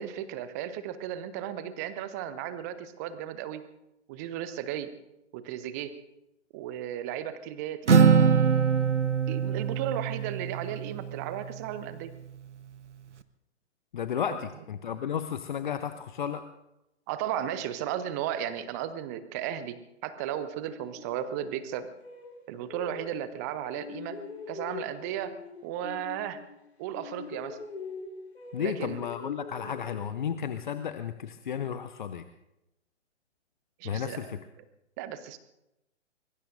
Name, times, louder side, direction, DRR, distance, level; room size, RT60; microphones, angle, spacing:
voice 1, 0.0-3.6 4.1-4.9 5.3-5.9 6.5-8.1 9.3-12.1 14.3-14.4 17.1-19.8 20.0-21.9 22.5-24.2 24.5-25.3 25.6-26.4 26.8-27.6 28.6-29.0 29.6-29.7 33.8-34.4 35.0-35.4, right 10 dB, 15° right, 13 dB, 0.6 m, -35 dB
Acoustic guitar, 7.9-11.5, right 6 dB, 70° right, 1.1 m, -23 dB
voice 2, 13.9-16.4 28.5-32.2 33.8-34.4, left 8 dB, 40° left, 11 dB, 0.7 m, -33 dB
sound 1, 20.7-23.4 23.7-26.7 26.9-30.5, left 4 dB, 60° left, 3.2 m, -44 dB
24.0 x 22.0 x 2.6 m, 0.91 s
figure-of-eight pair, 125°, 37 cm